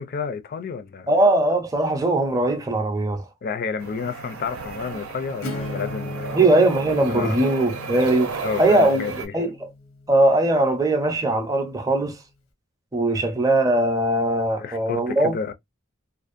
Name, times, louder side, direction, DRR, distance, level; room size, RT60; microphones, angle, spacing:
voice 1, 0.0-1.1 3.4-6.4 7.1-7.4 8.4-9.3 13.1-13.2 14.6-15.5, left 5 dB, 45° left, 0.4 m, -30 dB
voice 2, 1.1-3.2 6.3-9.0 9.3-9.7 10.1-12.2 12.9-15.4, right 2 dB, 15° right, 0.5 m, -20 dB
sound 1, 3.8-9.3, right 5 dB, 85° right, 0.6 m, -33 dB
Acoustic guitar / Strum, 5.4-10.9, left 2 dB, 90° left, 0.8 m, -37 dB
2.5 x 2.1 x 2.4 m
head